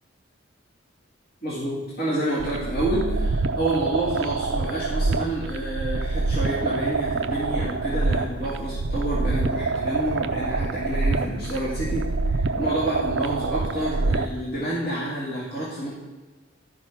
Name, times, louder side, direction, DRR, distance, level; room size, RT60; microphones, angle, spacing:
voice 1, 1.4-15.9, right 1 dB, 50° left, -7 dB, 2.3 m, -29 dB
sound 1, 2.4-14.4, right 3 dB, 60° right, 0.5 m, -26 dB
12.5 x 5.2 x 5.9 m, 1.3 s
head